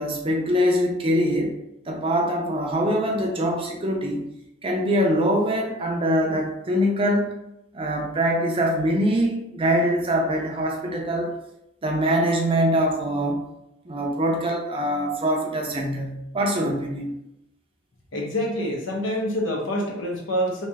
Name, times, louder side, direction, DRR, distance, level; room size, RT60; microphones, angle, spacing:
voice 1, 0.0-1.5 1.9-4.2 4.6-7.3 7.7-11.3 11.8-13.4 13.8-17.1, equal, 25° right, 0 dB, 0.5 m, -23 dB
voice 2, 18.1-20.7, equal, 70° left, -1 dB, 0.9 m, -26 dB
3.3 x 2.7 x 3.4 m, 0.84 s
head